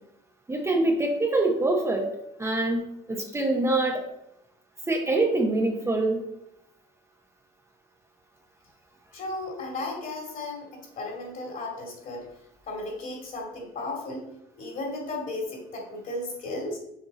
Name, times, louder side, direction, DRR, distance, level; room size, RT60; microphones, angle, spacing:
voice 1, 0.5-2.1 2.4-4.1 4.9-6.2, right 2 dB, 15° right, 2 dB, 0.7 m, -25 dB
voice 2, 9.1-12.2 12.6-14.3 14.5-16.8, left 2 dB, 55° left, 0 dB, 2.5 m, -35 dB
6.6 x 4.4 x 4.1 m, 0.81 s
cardioid pair, 110°, 17 cm